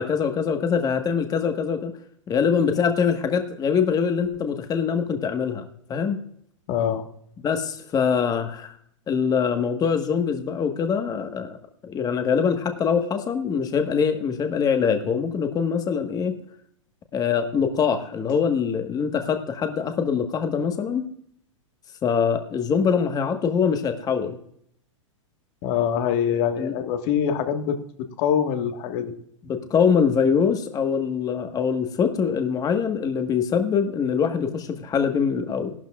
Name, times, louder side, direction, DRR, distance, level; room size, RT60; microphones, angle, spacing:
voice 1, 0.0-1.9 2.3-6.2 7.4-8.7 9.1-11.6 11.8-16.4 17.1-21.1 22.0-24.4 26.6-26.7 29.5-35.7, left 6 dB, 20° left, 6 dB, 1.4 m, -23 dB
voice 2, 6.7-7.0 25.6-27.8 28.2-29.1, left 8 dB, 45° left, 6 dB, 1.6 m, -24 dB
17.0 x 12.0 x 2.4 m, 0.68 s
hypercardioid pair, 115°, 17 cm